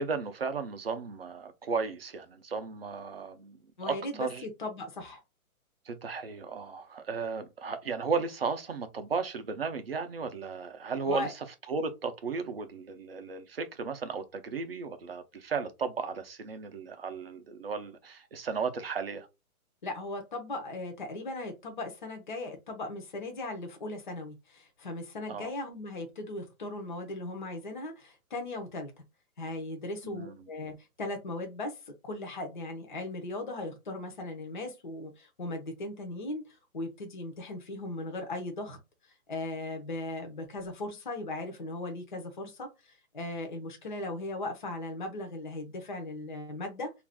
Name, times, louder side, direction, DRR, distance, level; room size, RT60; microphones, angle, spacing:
voice 1, 0.0-3.6 3.8-4.4 5.9-19.3 25.3-25.5 30.0-30.5, right 5 dB, 45° right, 0.4 m, -35 dB
voice 2, 3.8-5.2 11.1-11.3 19.8-28.9 29.4-38.8 39.3-46.9, left 2 dB, 35° left, 0.5 m, -38 dB
2.5 x 2.2 x 3.4 m
hypercardioid pair, 175°, 43 cm